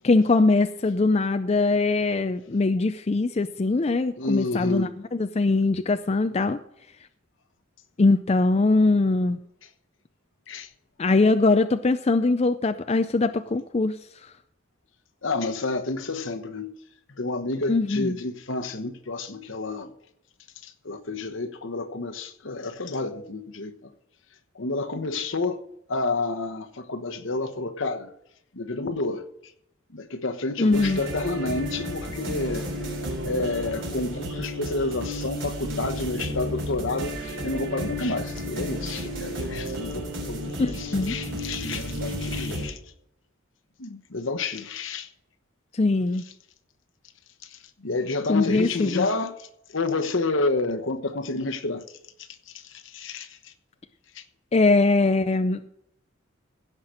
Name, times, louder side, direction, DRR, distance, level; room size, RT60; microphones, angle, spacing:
voice 1, 0.0-6.6 8.0-9.4 11.0-14.0 17.7-18.2 30.6-31.0 40.6-41.2 45.7-46.2 48.3-49.1 54.5-55.6, left 3 dB, 30° left, 0.4 m, -22 dB
voice 2, 4.2-4.9 10.5-10.7 15.2-16.7 17.2-19.9 20.6-23.9 24.5-25.6 25.9-28.1 28.5-29.3 29.9-32.7 33.2-42.8 43.8-45.1 47.4-51.8 52.5-53.5 54.1-54.2, left 3 dB, 70° left, 1.1 m, -30 dB
sound 1, 30.7-42.7, equal, 70° right, 3.8 m, -32 dB
16.5 x 5.9 x 6.5 m
head